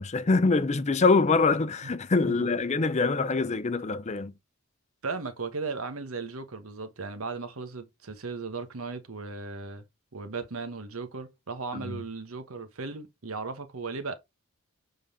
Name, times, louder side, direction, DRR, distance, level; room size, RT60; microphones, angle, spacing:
voice 1, 0.0-4.3 11.7-11.8, left 3 dB, 35° left, 0.5 m, -24 dB
voice 2, 2.3-2.6 5.0-9.8 10.1-14.2, right 4 dB, 80° right, 1.1 m, -36 dB
6.9 x 3.9 x 3.6 m
head